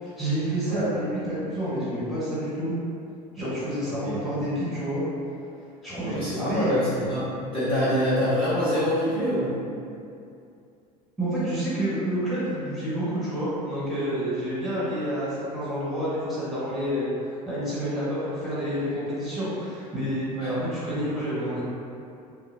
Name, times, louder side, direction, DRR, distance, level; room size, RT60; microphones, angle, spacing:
voice 1, 0.0-2.7 3.3-5.0 5.8-6.7 11.2-17.1 17.4-21.6, equal, ahead, -11 dB, 1.4 m, -29 dB
voice 2, 0.7-1.0 3.8-4.2 6.0-9.5 20.3-20.5, equal, 25° left, -13 dB, 1.1 m, -26 dB
2.9 x 2.4 x 2.7 m, 2.5 s
hypercardioid pair, 75°, 21 cm